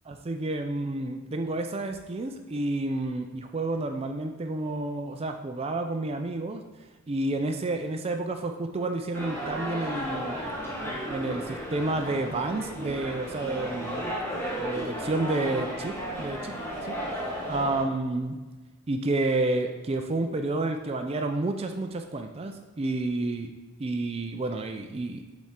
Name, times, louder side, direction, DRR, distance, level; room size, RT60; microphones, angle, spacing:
voice 1, 0.1-6.6 7.1-10.4 11.1-14.0 14.4-16.5 16.8-17.0 17.5-18.4 18.9-23.5 23.8-25.3, right 2 dB, 30° right, 6 dB, 0.4 m, -30 dB
sound 1, 9.1-17.8, equal, 10° left, 1.2 m, -34 dB
7.5 x 4.2 x 3.7 m, 1.3 s
head